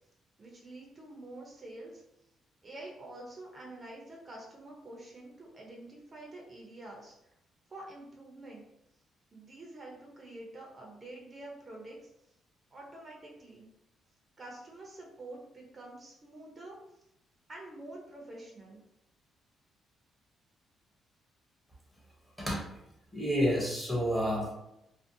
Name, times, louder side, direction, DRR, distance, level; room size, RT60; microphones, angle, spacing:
voice 1, 0.4-2.0 2.6-7.1 7.7-8.6 9.3-12.1 12.7-13.7 14.4-16.8 17.5-18.8, right 2 dB, 35° right, -1 dB, 0.6 m, -47 dB
voice 2, 23.1-24.5, equal, 5° left, -2 dB, 0.8 m, -29 dB
2.6 x 2.0 x 2.6 m, 0.84 s
cardioid pair, 90°, 0 cm